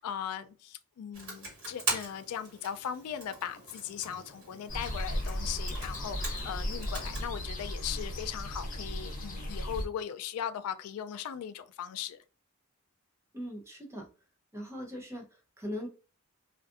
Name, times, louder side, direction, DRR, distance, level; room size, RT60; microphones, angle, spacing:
voice 1, 0.0-12.2, left 9 dB, 85° left, 0.3 m, -38 dB
Computer keyboard, 1.1-7.3, right 2 dB, 60° right, 1.5 m, -41 dB
sound 1, 4.7-9.9, left 1 dB, 35° left, 0.7 m, -36 dB
voice 2, 13.3-14.1 14.5-15.9, equal, 10° right, 0.5 m, -40 dB
2.5 x 2.4 x 2.4 m
head